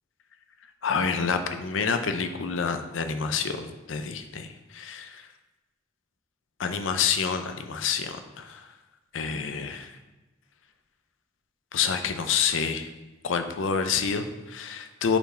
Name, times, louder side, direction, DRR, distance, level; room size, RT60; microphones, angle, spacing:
voice 1, 0.8-4.5 4.7-5.2 6.6-8.6 9.1-9.9 11.7-12.9 13.2-15.2, left 6 dB, 85° left, 8 dB, 0.5 m, -28 dB
5.6 x 4.4 x 4.3 m, 1.1 s
head